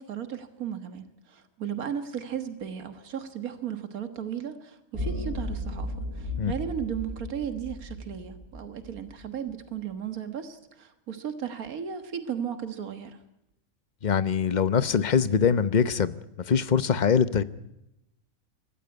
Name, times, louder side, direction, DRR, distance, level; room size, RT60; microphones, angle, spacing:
voice 1, 0.0-13.2, right 8 dB, 90° right, 9 dB, 1.9 m, -35 dB
sound 1, 4.9-9.3, left 1 dB, 40° right, 8.4 m, -35 dB
voice 2, 14.0-16.1 16.5-17.4, left 7 dB, 35° left, 14 dB, 0.9 m, -23 dB
24.0 x 14.5 x 9.6 m, 0.88 s
omnidirectional pair, 1.5 m